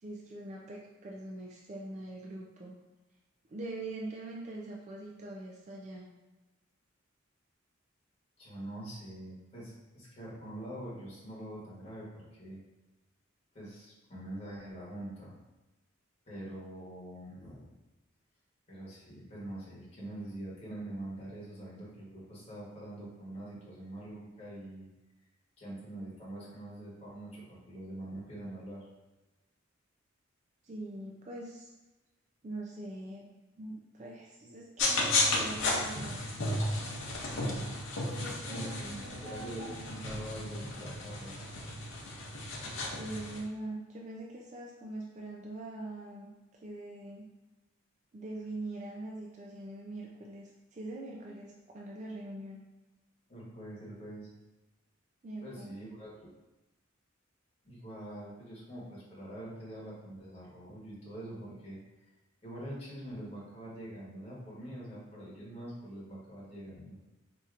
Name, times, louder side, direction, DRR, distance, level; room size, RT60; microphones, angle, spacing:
voice 1, 0.0-2.8 3.5-6.1 30.6-31.7 32.4-33.3 33.6-36.2 38.1-39.8 40.1-40.4 43.0-46.3 46.6-47.3 48.1-52.6 55.2-55.8, right 2 dB, 35° right, -2 dB, 0.3 m, -43 dB
voice 2, 8.4-12.6 13.5-15.3 16.3-17.7 18.7-24.9 25.6-28.9 37.3-41.4 53.3-54.3 55.4-56.3 57.6-62.1 62.4-67.0, right 1 dB, 30° left, -7 dB, 1.1 m, -44 dB
sound 1, 34.8-43.4, left 2 dB, 70° left, 0.7 m, -34 dB
4.4 x 2.7 x 2.4 m, 1.1 s
head